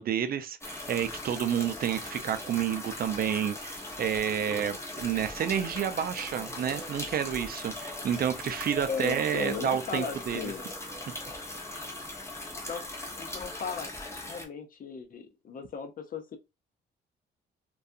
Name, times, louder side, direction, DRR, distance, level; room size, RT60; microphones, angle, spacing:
voice 1, 0.0-10.5, right 9 dB, 50° right, 0.4 m, -30 dB
sound 1, 0.6-14.5, left 2 dB, 15° left, 0.8 m, -39 dB
voice 2, 8.9-10.6 12.7-12.8 13.1-13.9 14.2-16.4, left 6 dB, 45° left, 0.6 m, -36 dB
2.3 x 2.3 x 2.6 m
cardioid pair, 90°, 20 cm